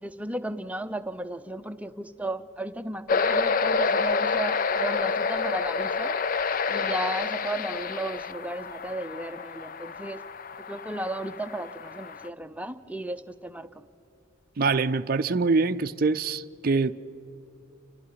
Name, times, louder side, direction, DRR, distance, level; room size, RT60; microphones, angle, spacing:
voice 1, 0.0-6.1 6.7-10.2 10.7-13.9, right 1 dB, 5° right, 0.7 m, -35 dB
sound 1, 3.1-12.3, left 4 dB, 40° left, 0.5 m, -28 dB
voice 2, 14.6-16.9, right 4 dB, 45° right, 0.5 m, -24 dB
29.5 x 29.5 x 5.8 m
head